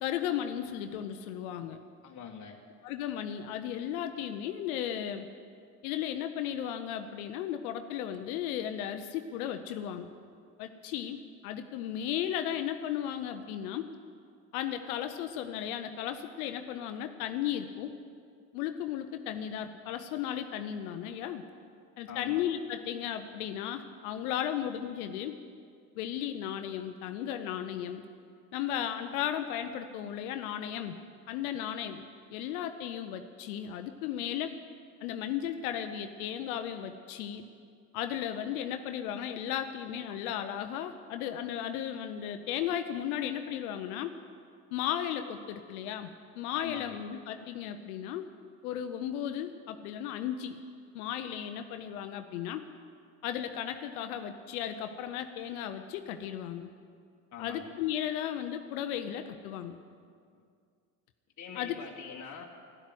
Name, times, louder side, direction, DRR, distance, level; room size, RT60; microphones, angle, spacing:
voice 1, 0.0-1.8 2.8-5.3 5.8-10.1 10.6-13.9 14.5-17.9 18.5-21.4 22.0-25.4 26.0-28.0 28.5-31.0 31.3-32.0 32.3-34.6 35.0-37.5 37.9-44.1 44.7-48.3 48.6-50.6 50.9-52.7 53.2-56.7 57.4-59.8 61.6-61.8, left 10 dB, 80° left, 8 dB, 0.8 m, -35 dB
voice 2, 2.0-2.6 22.1-22.4 46.5-47.0 57.3-57.7 61.4-62.5, left 7 dB, 40° left, 0 dB, 1.4 m, -44 dB
12.0 x 11.5 x 7.9 m, 2.2 s
hypercardioid pair, 55°, 43 cm